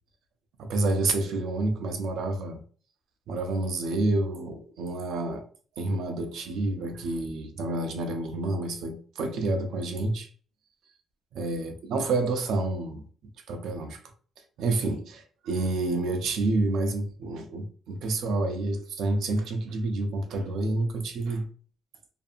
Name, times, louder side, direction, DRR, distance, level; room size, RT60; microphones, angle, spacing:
voice 1, 0.6-2.6 3.3-5.4 5.8-10.3 11.3-13.0 13.5-14.0 14.6-21.4, right 2 dB, 80° right, 0.5 m, -29 dB
2.6 x 2.6 x 2.5 m
cardioid pair, 160°, 0 cm